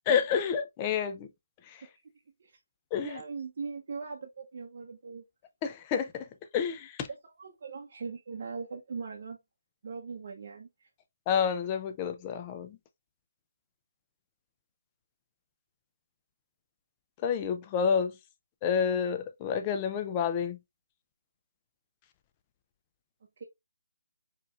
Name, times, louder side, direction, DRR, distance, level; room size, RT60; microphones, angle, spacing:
voice 1, 0.1-1.3 1.7-1.8 2.9-3.2 5.6-6.3 6.5-7.1 11.3-12.8 17.2-18.1 18.6-20.6, left 7 dB, 20° left, 0.4 m, -29 dB
voice 2, 3.0-5.2 7.1-9.4 9.8-10.9, right 5 dB, 45° right, 0.7 m, -40 dB
4.8 x 3.0 x 2.4 m
hypercardioid pair, 165°, 0 cm